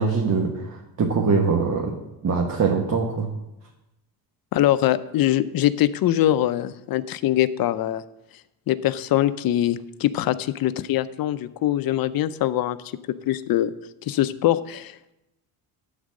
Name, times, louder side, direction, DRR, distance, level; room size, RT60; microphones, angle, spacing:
voice 1, 0.0-1.9 2.2-3.3, right 5 dB, 40° right, 0 dB, 1.2 m, -23 dB
voice 2, 4.5-8.0 8.7-12.8 13.3-13.7 14.0-15.1, left 13 dB, 60° left, 13 dB, 0.6 m, -23 dB
12.0 x 4.1 x 6.4 m, 0.93 s
cardioid pair, 130°, 41 cm